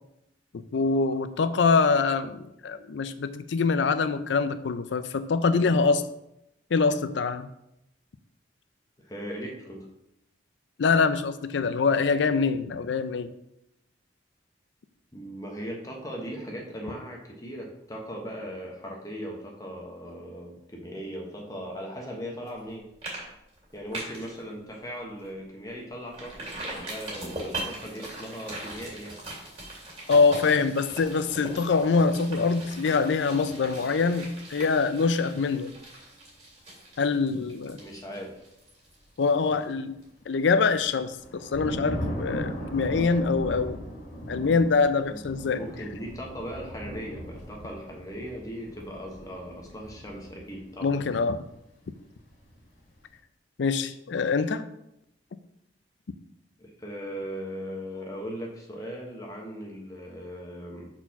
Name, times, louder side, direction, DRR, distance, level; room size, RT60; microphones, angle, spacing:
voice 1, 0.5-6.0 6.7-7.5 10.8-13.3 30.1-35.7 37.0-37.8 39.2-43.8 44.3-45.6 50.8-51.4 53.6-54.6, left 4 dB, 80° left, 12 dB, 0.4 m, -24 dB
voice 2, 9.0-9.9 15.1-22.9 23.7-26.3 26.8-29.2 37.8-38.4 45.1-45.3 45.6-51.0 56.6-60.9, equal, 20° left, 0 dB, 1.0 m, -38 dB
sound 1, 22.5-22.7 23.0-23.2 23.5-24.3 24.7-24.8 25.2-25.3 26.1-39.7 40.0-40.1, right 1 dB, 30° right, 2.3 m, -40 dB
sound 2, 40.6-40.7 40.9-51.4 51.8-53.0, equal, 45° left, 1.9 m, -38 dB
4.5 x 4.3 x 5.7 m, 0.82 s
head